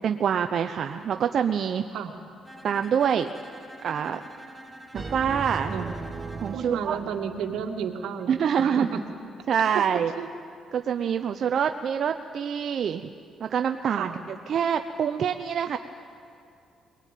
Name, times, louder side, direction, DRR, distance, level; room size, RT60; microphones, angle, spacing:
voice 1, 0.0-1.8 2.6-3.3 3.8-4.2 4.9-5.8 6.4-7.0 8.3-8.9 9.5-10.1 10.7-13.1 13.4-14.1 14.5-15.8, right 8 dB, 60° right, 7 dB, 0.7 m, -25 dB
Bowed string instrument, 2.4-6.7, equal, 10° right, 2.0 m, -46 dB
sound 1, 4.9-7.9, right 3 dB, 25° right, 1.5 m, -38 dB
voice 2, 6.5-9.0 9.7-9.8 10.2-10.3 14.0-14.2, right 7 dB, 85° right, 4 dB, 2.0 m, -32 dB
22.5 x 19.5 x 9.2 m, 2.5 s
cardioid pair, 90°, 0 cm